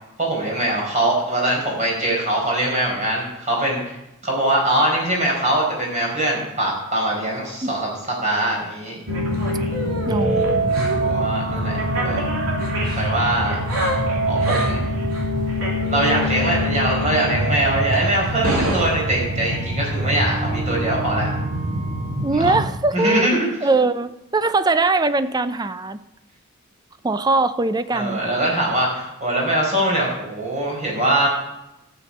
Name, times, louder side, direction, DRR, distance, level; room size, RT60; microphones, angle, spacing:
voice 1, 0.2-4.0 4.2-9.0 10.3-12.2 13.0-13.6 14.3-14.8 15.9-21.3 22.3-22.5 22.9-23.5 27.9-31.3, right 1 dB, 35° right, -2 dB, 4.9 m, -22 dB
sound 1, 9.1-22.7, right 1 dB, 75° right, 3.1 m, -23 dB
voice 2, 10.1-10.8 22.2-23.3 23.6-26.0 27.0-28.2, right 3 dB, 20° right, 12 dB, 0.5 m, -21 dB
12.5 x 8.5 x 5.3 m, 0.92 s
head